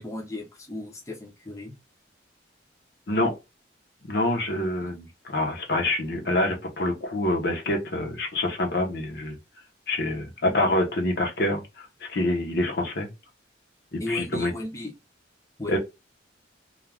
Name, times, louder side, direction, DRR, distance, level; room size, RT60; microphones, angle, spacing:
voice 1, 0.0-1.7 14.0-14.9 15.6-15.8, left 2 dB, 15° left, 0.6 m, -35 dB
voice 2, 4.1-9.4 9.9-13.1 13.9-14.5 15.7-15.8, left 1 dB, 55° left, 0.7 m, -26 dB
2.4 x 2.2 x 3.2 m
head